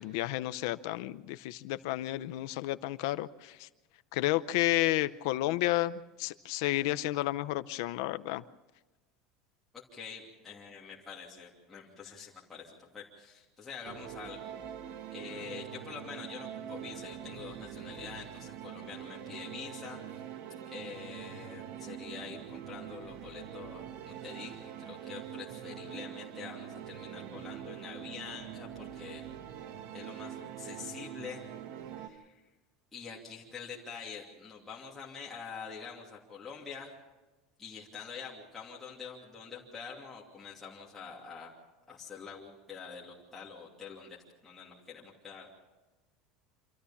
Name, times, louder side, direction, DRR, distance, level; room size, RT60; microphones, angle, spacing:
voice 1, 0.0-3.7 4.1-8.4, left 16 dB, 70° left, 12 dB, 0.7 m, -31 dB
voice 2, 9.7-14.5 15.1-20.0 20.6-29.3 29.9-31.5 32.0-32.4 32.9-36.9 37.6-41.5 41.9-44.2 44.4-45.5, left 6 dB, 10° left, -5 dB, 2.8 m, -46 dB
sound 1, 13.8-32.1, right 10 dB, 55° right, 1.5 m, -44 dB
26.5 x 14.0 x 7.2 m, 1.2 s
cardioid pair, 165°, 2 cm